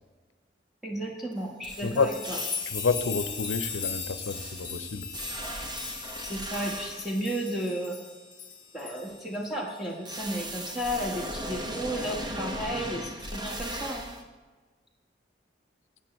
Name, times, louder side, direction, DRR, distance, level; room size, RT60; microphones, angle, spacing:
voice 1, 0.8-2.4 6.2-8.0 8.7-14.1, equal, ahead, -2 dB, 1.3 m, -33 dB
sound 1, 1.3-1.4 1.6-2.9 3.2-7.2 10.1-14.2, right 1 dB, 25° right, 0.9 m, -38 dB
sound 2, 2.0-9.8 10.2-10.3 11.1-11.7, left 6 dB, 25° left, 1.1 m, -38 dB
voice 2, 2.7-5.1, left 4 dB, 90° left, 11 dB, 0.6 m, -29 dB
13.0 x 8.4 x 3.1 m, 1.4 s
head